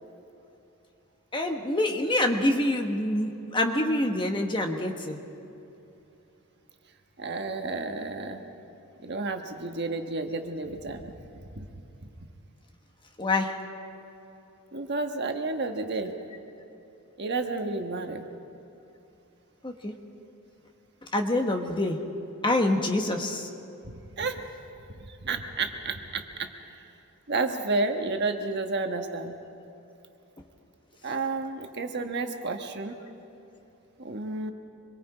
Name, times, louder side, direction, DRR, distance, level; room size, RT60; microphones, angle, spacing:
voice 1, 1.3-5.2 13.2-13.6 19.6-19.9 21.1-22.0 22.4-23.5, left 1 dB, 20° left, 3 dB, 1.3 m, -26 dB
voice 2, 7.2-8.4 9.0-11.1 11.6-11.7 14.7-16.1 17.2-18.2 23.9-24.4 25.2-26.5 27.3-29.4 31.0-32.9 34.0-34.5, right 3 dB, 50° right, 5 dB, 1.3 m, -31 dB
26.0 x 22.5 x 5.0 m, 2.9 s
head